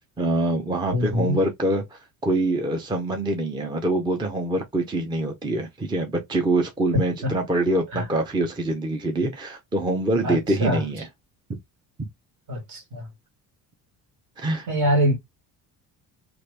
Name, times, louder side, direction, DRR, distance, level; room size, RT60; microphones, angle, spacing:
voice 1, 0.2-11.1 14.4-14.7, right 1 dB, 10° right, 0.5 m, -25 dB
voice 2, 0.9-1.4 7.2-7.3 7.9-8.0 10.2-10.8 12.5-13.1 14.7-15.2, equal, 55° right, 1.7 m, -24 dB
3.0 x 2.5 x 3.2 m
cardioid pair, 140°, 37 cm